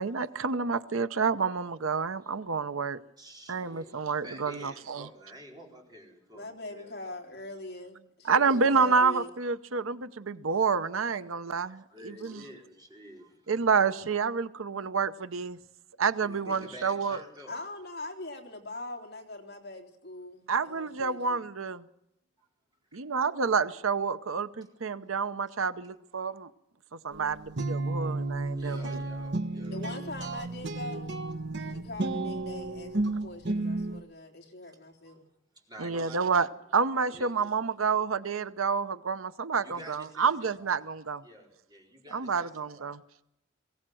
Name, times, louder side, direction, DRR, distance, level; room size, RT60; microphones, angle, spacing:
voice 1, 0.0-3.0 3.5-5.1 8.2-12.4 13.5-15.6 16.0-17.2 20.5-21.8 22.9-26.5 27.2-28.8 35.8-36.5 36.7-41.2 42.1-43.0, right 5 dB, 85° right, 13 dB, 0.8 m, -28 dB
voice 2, 3.2-7.2 11.6-13.5 16.2-17.6 22.4-22.5 22.9-23.0 28.5-29.8 34.6-34.7 35.0-35.2 35.5-36.5 37.1-37.5 39.6-40.8 41.2-43.0, right 1 dB, 20° right, -1 dB, 4.5 m, -50 dB
voice 3, 6.3-9.3 17.5-21.4 28.6-28.9 29.7-31.2 31.6-35.3, left 2 dB, 50° left, 2 dB, 3.5 m, -42 dB
sound 1, 27.1-34.0, right 2 dB, 60° right, 1.3 m, -32 dB
22.0 x 17.0 x 7.8 m, 0.82 s
head